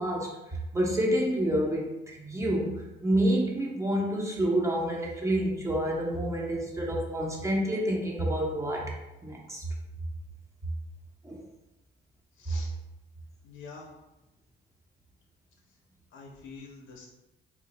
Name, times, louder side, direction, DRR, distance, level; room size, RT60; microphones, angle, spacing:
voice 1, 0.0-8.9 9.2-9.7 11.2-11.4, right 1 dB, 15° right, -1 dB, 0.9 m, -28 dB
voice 2, 12.4-12.7 13.4-13.9 16.1-17.1, left 4 dB, 75° left, 0 dB, 0.6 m, -46 dB
3.7 x 2.0 x 4.1 m, 1.0 s
cardioid pair, 90°, 20 cm